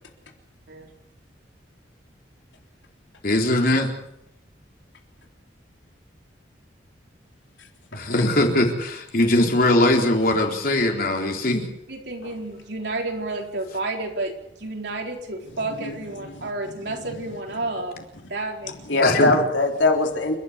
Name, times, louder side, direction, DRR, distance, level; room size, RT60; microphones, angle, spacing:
voice 1, 3.2-3.9 7.9-11.7 19.0-19.4, left 1 dB, 55° left, 2 dB, 4.0 m, -20 dB
voice 2, 7.9-8.3 12.2-12.3 15.8-15.9 16.3-17.0 18.9-20.4, left 2 dB, 85° left, 3 dB, 3.8 m, -23 dB
voice 3, 11.9-18.0 18.3-18.7, right 2 dB, 65° right, 1 dB, 4.3 m, -31 dB
29.0 x 12.0 x 8.2 m, 0.76 s
head